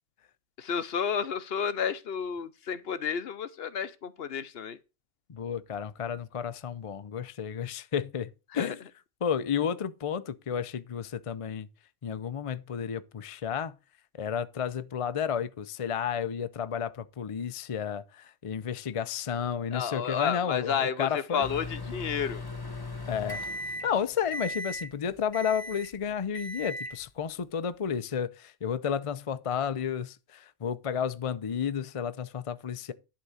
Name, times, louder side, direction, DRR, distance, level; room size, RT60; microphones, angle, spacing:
voice 1, 0.6-4.8 8.5-8.7 19.7-22.4, left 7 dB, 60° left, 0.9 m, -31 dB
voice 2, 5.3-8.8 9.2-11.7 12.0-13.8 14.1-21.5 23.1-32.9, left 7 dB, 40° left, 0.5 m, -32 dB
Microwave oven, 21.4-24.0 24.3-24.9 25.3-25.9 26.3-27.0, left 1 dB, 20° left, 1.1 m, -37 dB
11.5 x 3.9 x 7.1 m
omnidirectional pair, 1.2 m